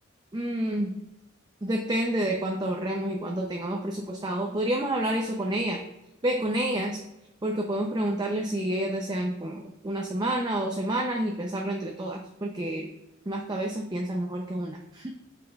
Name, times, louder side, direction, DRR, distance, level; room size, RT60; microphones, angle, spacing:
voice 1, 0.3-1.0 1.6-5.8 6.2-7.0 7.4-12.9 13.3-15.1, right 1 dB, 20° right, 1 dB, 0.5 m, -29 dB
8.4 x 5.8 x 2.3 m, 0.91 s
head